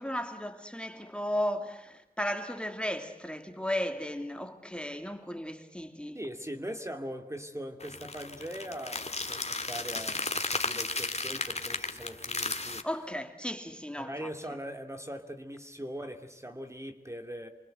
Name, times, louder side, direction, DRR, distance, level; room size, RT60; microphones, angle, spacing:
voice 1, 0.0-6.2 12.7-14.3, equal, 5° left, 2.7 m, -35 dB
voice 2, 6.1-12.8 14.0-17.5, equal, 20° right, 2.6 m, -41 dB
sound 1, 7.8-12.8, left 3 dB, 45° left, 2.2 m, -34 dB
29.0 x 25.0 x 7.9 m
wide cardioid pair, 50°, 16 cm